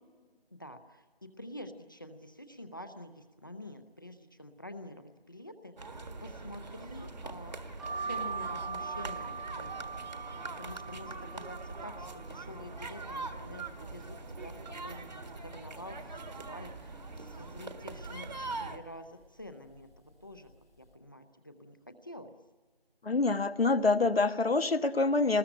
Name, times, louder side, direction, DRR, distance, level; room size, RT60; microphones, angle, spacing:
voice 1, 0.5-7.6 8.0-9.9 10.6-14.6 14.8-19.9 20.2-20.5 20.8-22.3, left 1 dB, 20° left, 9 dB, 0.7 m, -47 dB
sound 1, 5.8-18.8, right 3 dB, 45° right, 1.6 m, -42 dB
sound 2, 7.8-13.5 13.9-14.7 15.1-15.2 15.4-16.5 17.0-17.3 18.1-18.4 19.2-19.5 19.7-19.9, right 5 dB, ahead, 1.2 m, -42 dB
voice 2, 23.0-25.4, left 3 dB, 85° left, 10 dB, 1.3 m, -26 dB
24.5 x 20.5 x 9.9 m, 1.4 s
figure-of-eight pair, 170°, 29 cm